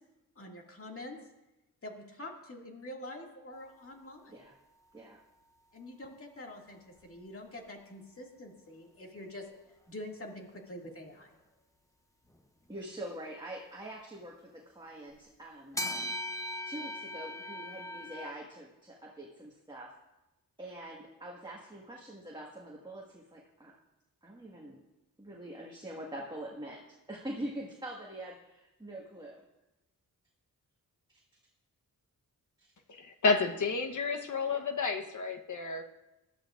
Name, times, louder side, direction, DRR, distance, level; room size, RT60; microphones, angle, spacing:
voice 1, 0.4-1.2 1.8-4.3 5.7-9.5 9.9-11.3, left 1 dB, 40° left, 0 dB, 2.2 m, -46 dB
sound 1, 7.0-7.1 12.3-12.4 14.1-14.2 15.7-18.3, left 1 dB, 10° left, 0.9 m, -38 dB
voice 2, 12.7-15.8 16.6-20.0 20.6-23.8 24.2-24.8 25.2-29.4 31.1-31.2 32.6-32.7 34.4-34.6, right 1 dB, 10° right, -3 dB, 1.6 m, -44 dB
voice 3, 33.2-35.8, left 4 dB, 55° left, 5 dB, 1.1 m, -30 dB
20.0 x 12.0 x 2.5 m, 0.97 s
wide cardioid pair, 100°, 36 cm